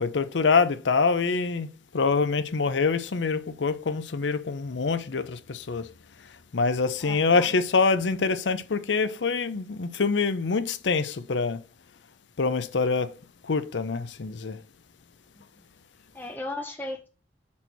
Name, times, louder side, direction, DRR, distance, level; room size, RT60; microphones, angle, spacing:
voice 1, 0.0-5.9 6.5-11.6 12.4-13.1 13.4-14.6, left 4 dB, 85° left, 0.6 m, -25 dB
voice 2, 7.0-7.5 15.4-15.5 16.1-17.1, left 2 dB, 10° left, 0.5 m, -36 dB
6.1 x 4.3 x 4.5 m
head